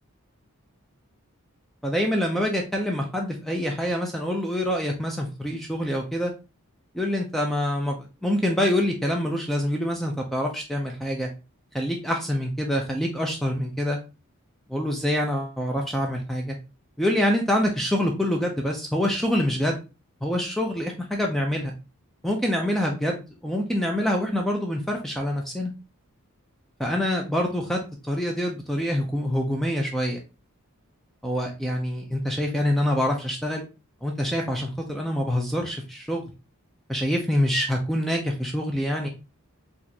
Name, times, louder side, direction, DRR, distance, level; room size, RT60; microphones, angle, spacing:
voice 1, 1.8-6.3 6.9-11.3 11.7-14.0 14.7-16.5 17.0-19.8 20.2-21.7 22.2-25.7 26.8-27.8 28.1-30.2 31.2-33.6 34.0-36.2 36.9-39.1, equal, ahead, 1 dB, 0.5 m, -26 dB
4.1 x 2.5 x 2.8 m, 0.29 s
head